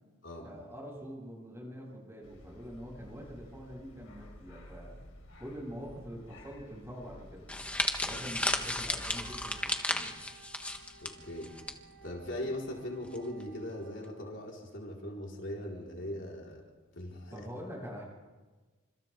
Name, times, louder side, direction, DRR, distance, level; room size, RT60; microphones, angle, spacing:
voice 1, 0.4-5.0 5.4-7.5 8.0-10.2 17.3-18.0, equal, 10° right, -2 dB, 7.8 m, -45 dB
sound 1, 2.2-9.6, left 1 dB, 75° left, 4.0 m, -52 dB
sound 2, 7.5-11.7 12.0-12.3 13.1-13.4, left 1 dB, 5° left, 1.3 m, -34 dB
Wind instrument woodwind instrument, 9.1-14.3, right 5 dB, 45° right, 5.4 m, -57 dB
voice 2, 11.0-11.5 12.0-16.6 16.9-17.5, left 1 dB, 60° left, -2 dB, 4.4 m, -40 dB
29.5 x 27.0 x 3.7 m, 1.3 s
head